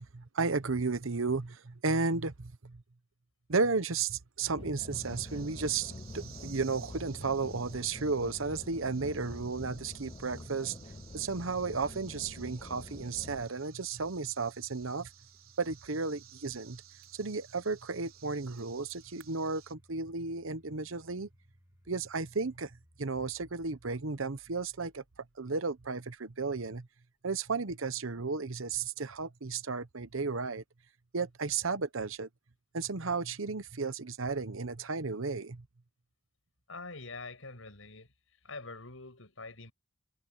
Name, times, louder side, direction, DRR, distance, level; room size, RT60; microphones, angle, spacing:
voice 1, 0.0-2.8 3.5-10.8 11.1-15.1 15.6-16.8 17.1-21.3 21.9-22.7 23.0-25.0 25.4-26.9 27.2-30.6 31.1-32.3 32.7-35.6, right 4 dB, 70° right, 1.0 m, -33 dB
sound 1, 4.6-13.4, left 2 dB, 30° left, 0.7 m, -46 dB
sound 2, 4.9-19.7, right 12 dB, 90° right, 3.7 m, -56 dB
Domestic sounds home sounds, 9.4-26.3, equal, 15° right, 3.1 m, -65 dB
voice 2, 36.7-38.1 38.4-39.7, left 3 dB, 70° left, 7.8 m, -45 dB
head